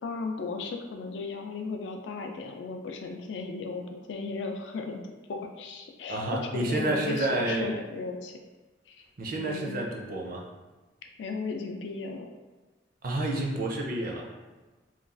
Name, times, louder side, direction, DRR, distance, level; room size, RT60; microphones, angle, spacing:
voice 1, 0.0-5.0 5.3-6.2 6.5-8.3 8.9-9.0 9.4-9.8 11.2-12.3, left 4 dB, 70° left, 4 dB, 0.3 m, -35 dB
voice 2, 6.1-7.7 9.2-10.4 13.0-14.3, right 2 dB, 50° right, 0 dB, 0.5 m, -29 dB
3.0 x 2.3 x 2.5 m, 1.2 s
head